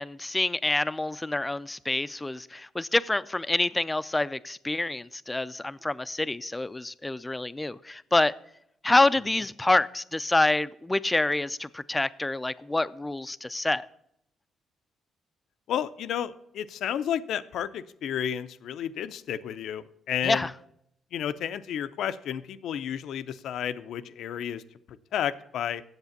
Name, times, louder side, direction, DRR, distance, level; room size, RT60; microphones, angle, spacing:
voice 1, 0.0-8.3 8.8-13.9 20.2-20.5, left 2 dB, 15° left, 0.4 m, -27 dB
voice 2, 15.7-20.5 21.1-24.6 25.1-25.8, left 9 dB, 75° left, 0.5 m, -31 dB
8.1 x 7.3 x 7.1 m
cardioid pair, 90°, 0 cm